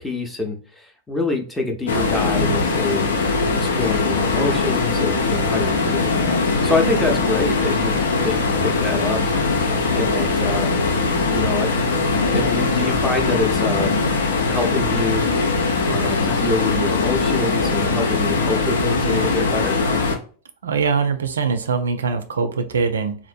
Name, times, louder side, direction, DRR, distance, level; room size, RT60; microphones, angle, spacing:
voice 1, 0.0-3.1 3.5-6.2 6.6-9.2 9.9-10.8 11.3-11.9 12.3-14.0 14.5-15.3 15.9-19.8, left 2 dB, 10° left, 3 dB, 0.6 m, -26 dB
sound 1, 1.9-20.2, left 3 dB, 65° left, 0.6 m, -21 dB
voice 2, 20.6-23.2, right 5 dB, 70° right, 9 dB, 0.4 m, -22 dB
3.5 x 2.5 x 2.4 m, 0.41 s
figure-of-eight pair, 90°, 0 cm